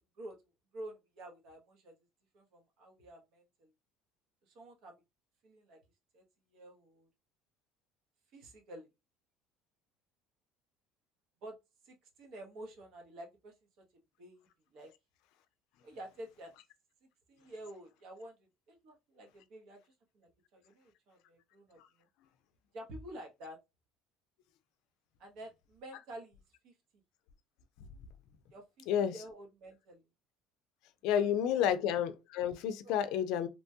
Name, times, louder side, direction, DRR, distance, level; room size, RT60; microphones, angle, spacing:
voice 1, 0.7-1.9 2.3-3.7 4.4-5.0 5.4-5.8 6.1-6.2 6.5-7.1 8.3-8.9 11.4-11.6 11.8-13.5 14.2-14.9 15.8-16.5 17.3-18.4 18.7-21.8 22.7-23.6 25.2-26.7 28.5-30.1 31.0-31.3 31.5-31.7 32.8-33.0, right 1 dB, 65° right, 0.9 m, -50 dB
voice 2, 31.0-33.5, left 9 dB, 75° left, 0.4 m, -30 dB
2.9 x 2.2 x 2.7 m
supercardioid pair, 110°, 0 cm